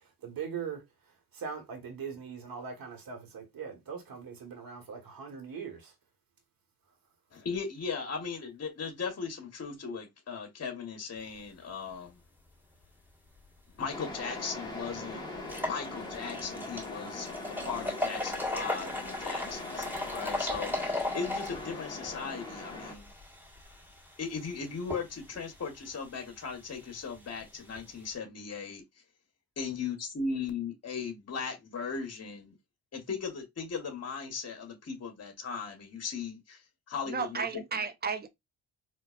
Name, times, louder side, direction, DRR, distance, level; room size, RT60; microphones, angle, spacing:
voice 1, 0.2-0.8 1.3-5.9, right 6 dB, 60° right, 1.4 m, -40 dB
voice 2, 7.3-12.2 13.8-15.3 15.6-17.3 17.6-23.1 24.2-28.8 29.6-32.6 32.9-36.6 36.9-37.5, left 5 dB, 40° left, 1.2 m, -37 dB
sound 1, 13.9-22.9, left 2 dB, 10° left, 1.2 m, -41 dB
sound 2, 14.1-14.2 14.6-14.7 15.4-28.1, left 2 dB, 5° right, 1.7 m, -38 dB
voice 3, 37.1-38.3, right 5 dB, 25° right, 0.5 m, -33 dB
4.4 x 2.5 x 2.4 m
cardioid pair, 100°, 40 cm